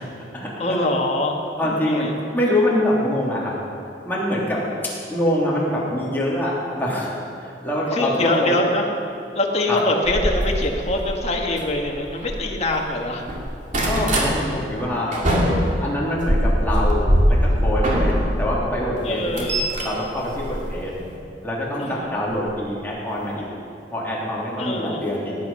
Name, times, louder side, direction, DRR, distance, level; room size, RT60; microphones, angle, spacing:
voice 1, 0.6-1.4 1.6-2.1 7.9-8.9 9.3-13.3 19.0-19.6 21.8-22.1 24.6-25.0, left 2 dB, 40° left, 0 dB, 1.6 m, -24 dB
voice 2, 1.6-3.5 4.0-4.6 5.1-7.1 7.4-8.5 9.7-9.8 13.9-15.2 15.8-19.5 19.8-20.9 21.4-23.5 23.9-25.4, left 1 dB, 10° left, -6 dB, 3.1 m, -24 dB
sound 1, 10.0-12.8 13.1-14.3 14.8-18.6 19.0-21.2 22.2-22.4 22.9-23.0 23.2-23.3, equal, 45° right, 2.3 m, -22 dB
18.0 x 9.6 x 5.6 m, 2.5 s
head